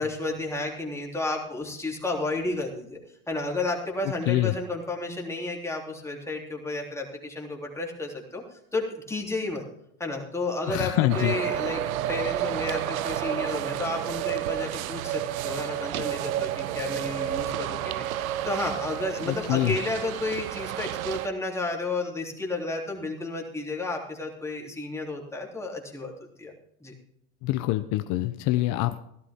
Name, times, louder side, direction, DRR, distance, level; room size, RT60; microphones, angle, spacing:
voice 1, 0.0-3.0 3.3-9.6 10.0-11.8 12.1-26.5 26.8-26.9, left 2 dB, 5° left, -1 dB, 3.5 m, -32 dB
voice 2, 4.0-4.5 10.7-11.3 19.3-19.7 27.4-29.0, left 16 dB, 45° left, 9 dB, 0.9 m, -25 dB
sound 1, 11.1-21.3, right 12 dB, 85° right, 0.9 m, -31 dB
16.0 x 12.5 x 3.7 m, 0.74 s
supercardioid pair, 120°, 40 cm